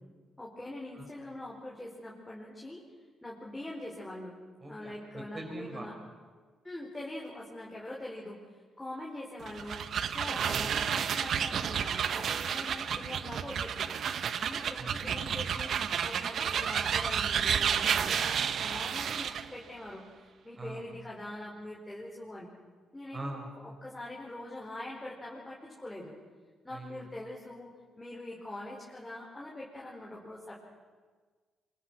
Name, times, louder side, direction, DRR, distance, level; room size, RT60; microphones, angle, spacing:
voice 1, 0.4-2.8 3.2-4.3 4.7-6.0 6.6-8.4 8.8-9.8 10.1-13.9 14.4-15.7 16.0-22.5 22.9-26.1 26.6-27.7 28.0-30.5, left 1 dB, 10° left, -4 dB, 4.6 m, -43 dB
voice 2, 4.6-5.9 10.5-10.7 14.8-15.2 20.6-20.8 23.1-23.5 26.7-27.1, right 2 dB, 30° right, 1 dB, 5.8 m, -42 dB
sound 1, 9.4-19.5, right 8 dB, 60° right, 1.0 m, -31 dB
25.5 x 24.5 x 6.2 m, 1.5 s
cardioid pair, 90°, 0 cm